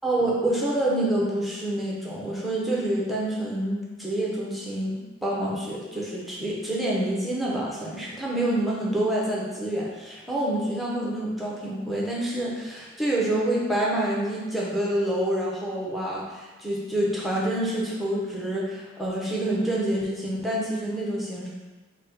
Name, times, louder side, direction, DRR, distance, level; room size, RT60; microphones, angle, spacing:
voice 1, 0.0-21.5, right 1 dB, ahead, -5 dB, 0.7 m, -27 dB
4.2 x 2.1 x 3.9 m, 1.3 s
head